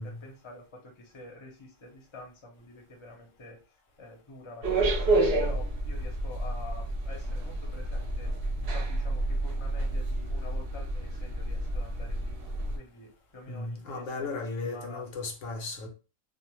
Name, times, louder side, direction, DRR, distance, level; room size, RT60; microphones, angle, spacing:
voice 1, 0.0-3.6 4.0-8.3 8.6-12.3 12.7-15.1, left 2 dB, 25° left, 0.7 m, -47 dB
sound 1, 4.6-12.8, right 2 dB, 55° right, 0.8 m, -29 dB
voice 2, 13.5-15.9, left 3 dB, 70° left, 1.0 m, -36 dB
2.5 x 2.1 x 2.9 m
omnidirectional pair, 1.4 m